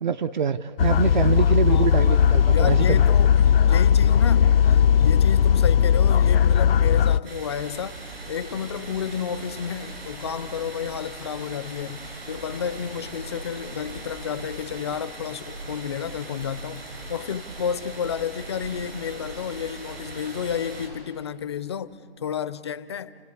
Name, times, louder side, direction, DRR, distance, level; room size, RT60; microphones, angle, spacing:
voice 1, 0.0-3.0, right 7 dB, 50° right, 0.6 m, -25 dB
sound 1, 0.8-7.2, left 8 dB, 75° left, 0.6 m, -18 dB
voice 2, 1.5-1.9 2.5-8.0 8.3-16.8 17.1-23.1, left 7 dB, 30° left, 0.5 m, -31 dB
sound 2, 7.2-20.9, right 2 dB, 85° right, 7.0 m, -39 dB
30.0 x 17.5 x 8.3 m
hypercardioid pair, 160°, 30 cm